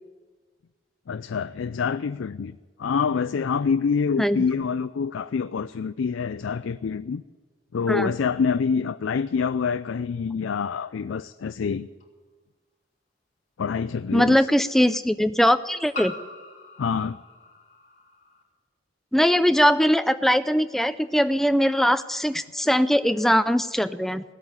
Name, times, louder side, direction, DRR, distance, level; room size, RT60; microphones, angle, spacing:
voice 1, 1.1-7.2 7.7-11.9 13.6-14.5 16.8-17.2, left 5 dB, 75° left, 0.4 m, -26 dB
sound 1, 12.0-12.1 13.7-13.8 15.9-18.4, left 2 dB, 35° left, 2.8 m, -41 dB
voice 2, 14.1-16.1 19.1-24.2, equal, ahead, 0.4 m, -21 dB
16.5 x 8.4 x 9.5 m
head